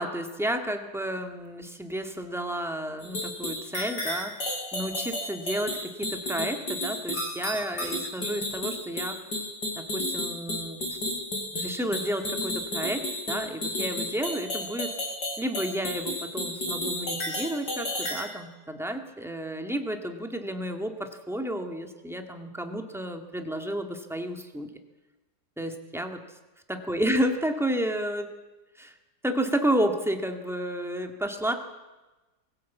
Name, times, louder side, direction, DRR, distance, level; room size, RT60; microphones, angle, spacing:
voice 1, 0.0-4.4 4.7-9.2 9.8-11.0 11.5-14.9 15.4-24.7 25.6-26.2 26.7-28.3 28.8-28.9 29.2-31.5, right 1 dB, ahead, 5 dB, 1.8 m, -31 dB
sound 1, 3.0-18.2, left 1 dB, 65° left, 6.7 m, -32 dB
22.5 x 16.0 x 8.4 m, 1.1 s
omnidirectional pair, 1.9 m